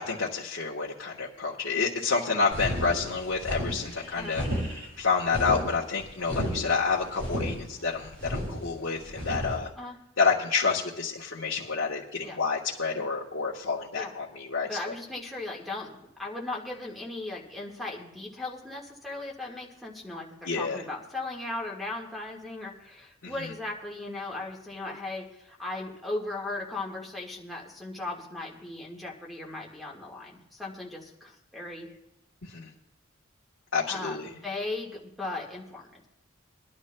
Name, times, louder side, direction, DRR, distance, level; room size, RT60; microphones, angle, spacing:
voice 1, 0.0-4.4 5.0-9.7 10.2-14.9 20.4-20.8 23.2-23.5 32.4-32.7 33.7-34.3, left 4 dB, 75° left, -5 dB, 1.3 m, -29 dB
sound 1, 2.5-9.6, equal, 60° right, 5.7 m, -33 dB
voice 2, 14.6-31.9 33.9-36.1, left 2 dB, ahead, -4 dB, 1.6 m, -37 dB
23.5 x 11.0 x 2.2 m, 0.83 s
head